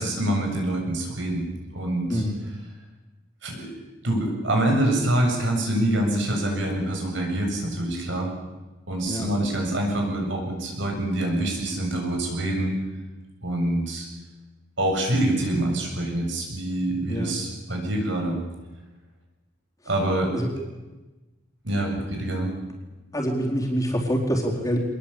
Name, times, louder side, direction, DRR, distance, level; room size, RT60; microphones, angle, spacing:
voice 1, 0.0-1.4 1.7-2.2 3.4-3.7 4.0-8.3 8.9-12.7 13.4-14.1 14.8-18.4 19.9-20.3 21.6-22.5, right 1 dB, 65° right, 1 dB, 7.5 m, -25 dB
voice 2, 23.1-24.8, equal, 20° left, -1 dB, 4.3 m, -25 dB
24.5 x 21.0 x 8.6 m, 1.1 s
head